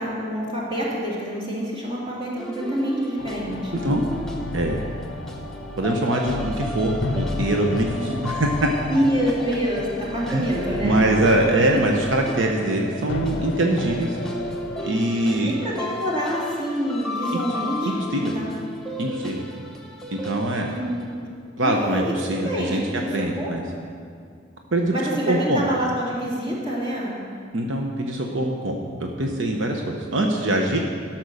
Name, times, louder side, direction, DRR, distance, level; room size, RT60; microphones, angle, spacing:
voice 1, 0.0-3.9 7.9-8.1 8.9-11.0 14.8-15.1 15.4-18.5 20.7-21.3 21.6-22.0 22.3-23.5 24.9-27.2, equal, 30° right, -5 dB, 2.3 m, -27 dB
sound 1, 2.4-21.1, left 1 dB, ahead, 0.8 m, -35 dB
sound 2, 3.2-14.9, left 2 dB, 60° left, 0.5 m, -33 dB
voice 2, 5.8-8.7 10.3-10.5 10.8-14.2 14.8-15.5 18.1-18.3 19.0-19.4 20.1-20.7 21.6-22.8 23.1-23.6 24.7-24.9 25.2-25.7 27.5-30.8, right 1 dB, 75° right, 1 dB, 0.9 m, -23 dB
12.5 x 6.0 x 6.5 m, 2.2 s
head